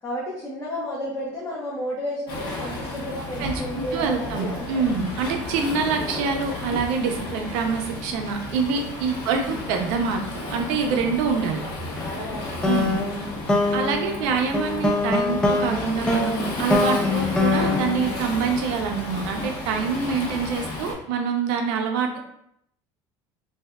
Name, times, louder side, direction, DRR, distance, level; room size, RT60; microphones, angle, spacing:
voice 1, 0.0-4.9 5.9-6.4 9.4-9.6 11.6-11.7 12.0-13.5, equal, 30° left, -6 dB, 0.8 m, -33 dB
Waves surf, 2.3-20.9, left 2 dB, 55° left, 1.0 m, -33 dB
voice 2, 3.4-10.2 10.5-11.6 12.6-13.0 13.7-22.2, right 5 dB, 75° right, 4 dB, 0.5 m, -26 dB
sound 1, 12.6-19.0, left 2 dB, 10° left, 0.4 m, -24 dB
3.4 x 2.6 x 2.2 m, 0.74 s
cardioid pair, 130°, 10 cm